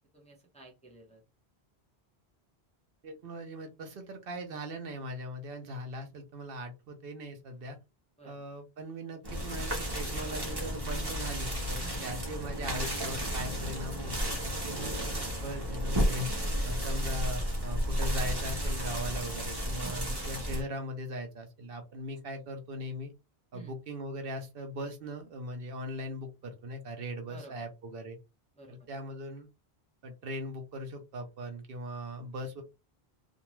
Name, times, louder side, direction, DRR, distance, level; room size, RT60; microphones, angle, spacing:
voice 1, 0.1-1.2 8.2-8.3 11.8-12.0 19.8-20.2 23.5-23.7 27.3-27.7 28.6-28.9, right 3 dB, 10° left, -1 dB, 0.5 m, -51 dB
voice 2, 3.0-7.8 8.2-23.1 23.5-28.2 28.7-29.5 30.0-32.6, equal, 65° right, 5 dB, 0.8 m, -40 dB
sound 1, 9.2-20.6, equal, 25° right, 0.8 m, -33 dB
2.5 x 2.2 x 2.9 m, 0.26 s
omnidirectional pair, 1.1 m